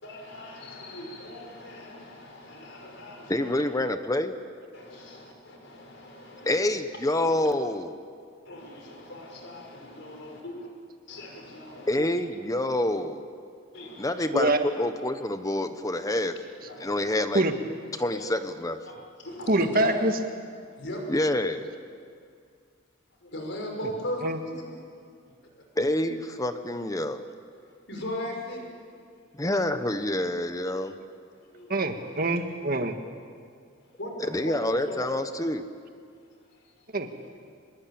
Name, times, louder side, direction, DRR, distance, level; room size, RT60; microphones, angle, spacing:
voice 1, 0.0-3.6 4.7-6.8 7.2-7.3 8.4-10.7 11.1-12.1 13.7-14.3 16.7-17.1 18.1-18.2 18.9-19.0 19.2-20.2 20.7-21.0 23.2-24.8 25.2-25.3 27.9-28.7 28.9-29.0 31.4-31.8 34.0-35.1 36.1-36.2 36.5-36.9, left 1 dB, 65° left, 1 dB, 5.9 m, -38 dB
voice 2, 3.3-4.3 6.4-8.0 11.9-13.2 14.0-16.4 16.8-17.4 18.0-18.8 21.1-21.7 25.8-27.2 29.3-30.9 34.3-35.6, left 1 dB, 15° left, 9 dB, 1.0 m, -27 dB
voice 3, 19.5-20.1 23.8-23.9 24.2-24.4 31.7-33.0 36.9-37.1, right 2 dB, 45° right, 6 dB, 1.7 m, -24 dB
24.5 x 21.5 x 8.8 m, 2.2 s
head